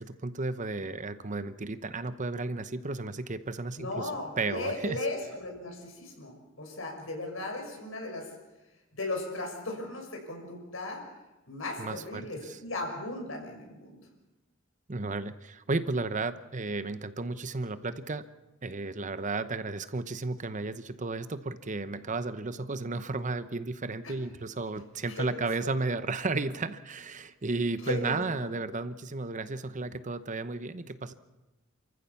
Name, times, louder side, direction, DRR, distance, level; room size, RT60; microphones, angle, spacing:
voice 1, 0.0-4.1 4.4-5.0 11.8-12.6 14.9-18.2 18.6-31.1, right 3 dB, 40° right, 12 dB, 0.9 m, -33 dB
voice 2, 3.8-8.3 8.9-11.0 11.5-14.0 24.0-24.1 25.1-25.7 27.8-28.2, left 2 dB, 80° left, 2 dB, 6.1 m, -36 dB
28.0 x 14.5 x 7.1 m, 1.1 s
head